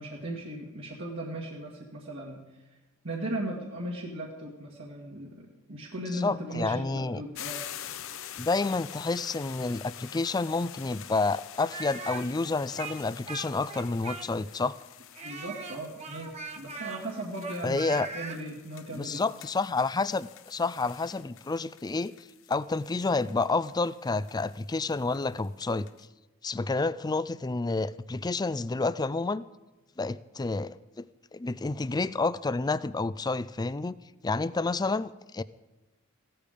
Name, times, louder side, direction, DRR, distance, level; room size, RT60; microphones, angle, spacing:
voice 1, 0.0-2.4 3.0-7.7 15.2-19.2, right 1 dB, 60° right, -3 dB, 2.1 m, -37 dB
voice 2, 6.1-7.2 8.4-14.8 17.6-18.1 18.9-22.1 22.5-25.9 26.4-29.4 30.0-31.1 31.3-34.0 34.2-35.4, left 3 dB, 20° left, 17 dB, 0.4 m, -29 dB
sound 1, 7.3-26.0, left 11 dB, 65° left, 0.8 m, -47 dB
Speech, 11.6-14.5 15.1-18.4, right 4 dB, 30° right, 1.4 m, -40 dB
16.0 x 13.5 x 5.2 m, 1.1 s
head